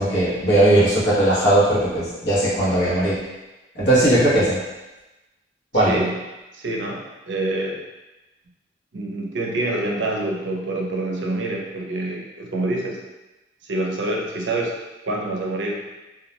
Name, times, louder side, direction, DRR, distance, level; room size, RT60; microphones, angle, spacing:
voice 1, 0.0-3.2 3.7-4.6 5.7-6.0, right 1 dB, 70° left, -8 dB, 0.8 m, -18 dB
voice 2, 5.7-6.2 6.5-7.0 7.3-7.8 8.9-13.0 13.6-14.7 15.1-15.8, right 2 dB, 80° right, 0 dB, 0.4 m, -26 dB
2.2 x 2.0 x 2.8 m, 1.1 s
head